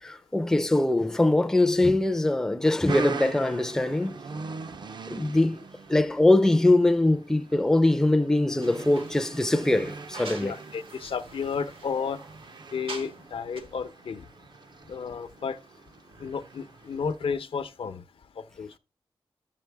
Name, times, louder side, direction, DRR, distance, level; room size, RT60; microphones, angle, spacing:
voice 1, 0.0-4.2 5.1-5.6 5.9-10.6, left 2 dB, 5° left, 0.4 m, -22 dB
sound 1, 2.9-17.2, right 4 dB, 55° right, 0.6 m, -41 dB
sound 2, 8.6-13.3 13.6-13.7, right 3 dB, 85° right, 1.5 m, -45 dB
voice 2, 10.4-12.2 12.7-14.2 14.9-15.6 16.2-18.0 18.6-18.8, left 6 dB, 80° left, 0.7 m, -32 dB
11.0 x 7.6 x 3.4 m
wide cardioid pair, 155°, 9 cm